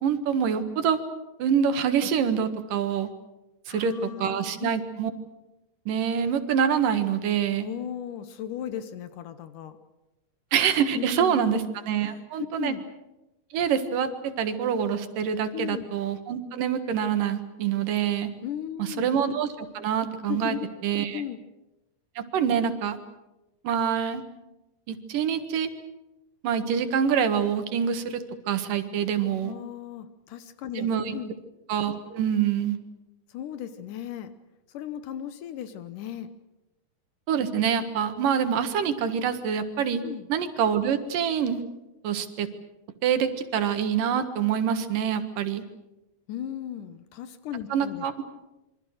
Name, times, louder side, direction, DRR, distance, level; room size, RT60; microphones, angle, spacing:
voice 1, 0.0-1.0 1.4-3.1 3.7-5.1 5.9-7.7 10.5-11.6 11.9-12.7 13.5-14.1 14.4-18.3 18.8-19.5 19.7-20.6 20.8-21.2 22.2-23.0 23.6-24.2 24.9-25.7 26.4-29.5 30.8-31.1 31.7-32.8 37.3-40.0 40.3-41.6 42.0-42.5 43.0-45.6 47.7-48.2, right 8 dB, 85° right, 9 dB, 3.3 m, -26 dB
voice 2, 3.7-4.8 7.6-9.8 10.9-11.6 12.0-12.8 15.5-15.9 18.4-19.1 20.3-20.7 21.1-21.4 29.4-31.3 33.3-34.3 34.7-36.3 40.0-40.3 46.3-48.1, left 10 dB, 75° left, 11 dB, 2.5 m, -36 dB
27.0 x 24.0 x 6.5 m, 0.98 s
omnidirectional pair, 3.7 m